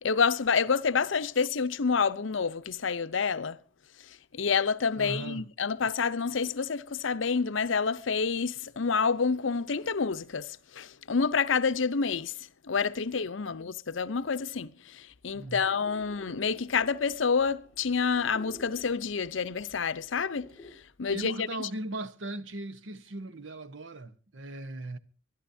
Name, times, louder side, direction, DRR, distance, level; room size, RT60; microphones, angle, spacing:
voice 1, 0.0-3.6 4.3-12.3 12.7-20.5 21.0-21.3, left 5 dB, 75° left, 0.7 m, -28 dB
voice 2, 5.0-5.5 13.4-13.6 15.3-15.7 21.1-25.0, right 1 dB, 70° right, 1.1 m, -38 dB
sound 1, 15.4-20.7, left 1 dB, 5° left, 6.7 m, -53 dB
24.5 x 12.0 x 2.7 m
head